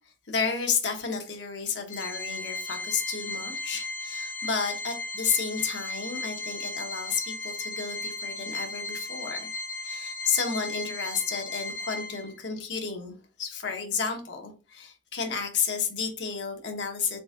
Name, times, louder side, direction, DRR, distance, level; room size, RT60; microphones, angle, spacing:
voice 1, 0.3-9.5 9.8-17.2, left 6 dB, 80° left, 1.0 m, -31 dB
Organ, 1.9-12.5, left 2 dB, 45° left, 0.8 m, -36 dB
3.9 x 3.6 x 2.4 m
head